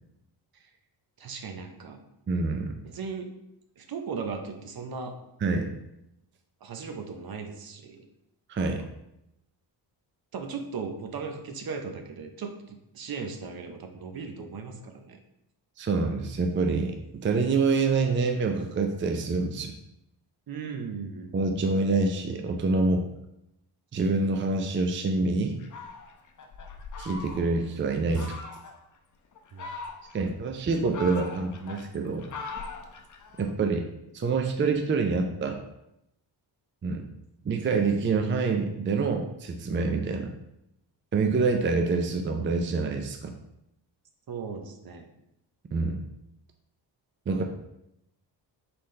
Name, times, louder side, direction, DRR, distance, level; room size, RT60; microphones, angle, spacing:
voice 1, 1.2-2.0 2.8-3.3 3.8-5.2 6.6-8.0 8.6-8.9 10.3-15.2 20.5-21.3 29.5-29.7 44.3-45.1, right 5 dB, 50° right, 5 dB, 0.8 m, -37 dB
voice 2, 2.3-2.7 5.4-5.7 8.5-8.8 15.8-19.7 21.3-23.1 23.9-25.6 27.0-28.4 30.1-32.3 33.4-33.9 34.1-35.6 36.8-37.1 37.4-40.3 41.1-43.3 45.7-46.0 47.3-47.4, right 4 dB, 25° right, 4 dB, 0.5 m, -26 dB
Fowl, 25.6-27.7 28.1-28.8 29.3-30.3 30.7-33.5, left 4 dB, 40° left, 0.7 m, -41 dB
4.3 x 3.7 x 3.2 m, 0.83 s
cardioid pair, 65°, 45 cm